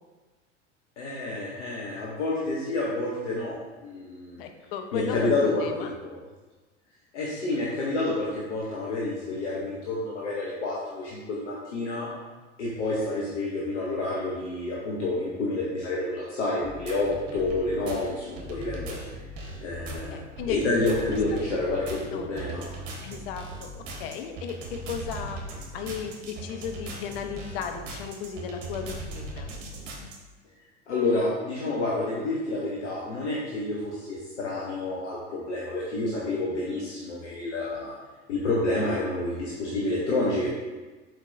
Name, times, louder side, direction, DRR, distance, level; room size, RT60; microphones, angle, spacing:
voice 1, 1.0-3.6 3.8-4.4 4.9-6.2 7.1-12.1 12.6-19.0 19.6-20.2 20.5-22.6 30.9-37.9 38.3-40.5, left 2 dB, 70° left, -5 dB, 0.9 m, -29 dB
voice 2, 4.4-5.9 20.1-20.6 21.3-21.4 22.1-22.3 23.0-23.7 24.0-25.4 25.7-29.5, left 7 dB, 50° left, 6 dB, 0.6 m, -35 dB
sound 1, 16.6-30.2, right 2 dB, 50° right, 1.0 m, -39 dB
4.5 x 4.4 x 2.6 m, 1.3 s
figure-of-eight pair, 80°, 37 cm